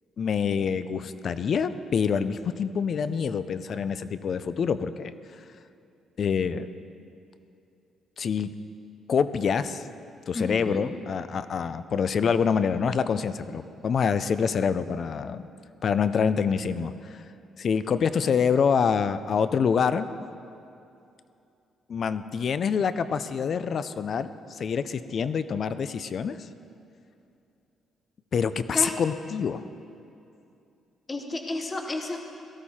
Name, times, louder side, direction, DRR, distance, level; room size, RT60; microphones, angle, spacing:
voice 1, 0.2-5.1 6.2-6.7 8.2-8.5 9.1-9.8 10.3-15.4 15.8-17.2 17.6-20.1 21.9-26.4 28.3-29.6, left 6 dB, 50° left, 13 dB, 0.5 m, -26 dB
voice 2, 10.3-10.8 28.7-29.0 31.1-32.2, left 2 dB, 20° left, 3 dB, 1.0 m, -31 dB
17.5 x 13.5 x 4.3 m, 2.7 s
cardioid pair, 130°, 0 cm